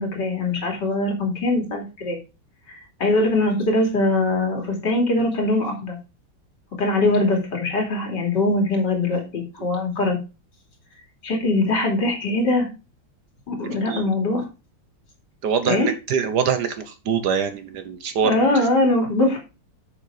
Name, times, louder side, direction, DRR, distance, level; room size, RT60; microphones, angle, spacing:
voice 1, 0.0-2.2 2.7-6.0 6.8-10.2 11.2-12.7 13.5-14.5 15.7-15.9 18.2-19.4, left 2 dB, 60° left, 1 dB, 3.4 m, -22 dB
voice 2, 15.4-16.7 17.1-18.5, right 7 dB, 65° right, 9 dB, 1.4 m, -23 dB
8.0 x 6.6 x 4.9 m, 0.30 s
omnidirectional pair, 2.1 m